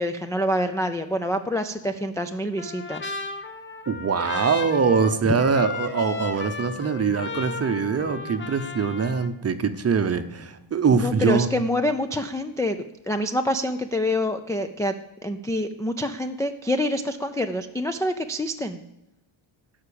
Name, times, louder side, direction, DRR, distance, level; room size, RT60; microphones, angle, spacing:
voice 1, 0.0-3.1 10.9-15.0 15.2-18.8, left 1 dB, 5° left, 4 dB, 0.3 m, -26 dB
Trumpet, 2.6-9.3, left 3 dB, 25° left, 0.9 m, -35 dB
voice 2, 3.9-11.5, right 5 dB, 30° right, 10 dB, 0.7 m, -23 dB
12.0 x 5.8 x 8.6 m, 0.93 s
wide cardioid pair, 155°, 49 cm